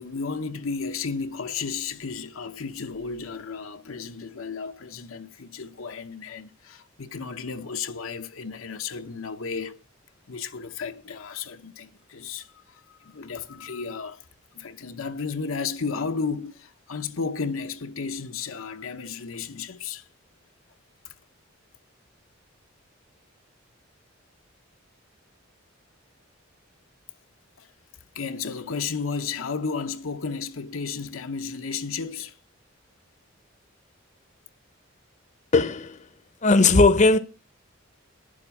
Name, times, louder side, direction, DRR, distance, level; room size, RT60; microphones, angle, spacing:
voice 1, 0.0-9.8 10.3-14.2 14.5-20.1 21.0-21.1 27.6-27.7 28.1-32.4, left 5 dB, 85° left, 0.9 m, -33 dB
voice 2, 35.5-36.0 36.4-37.2, left 3 dB, 35° left, 0.7 m, -17 dB
11.0 x 7.5 x 7.0 m
head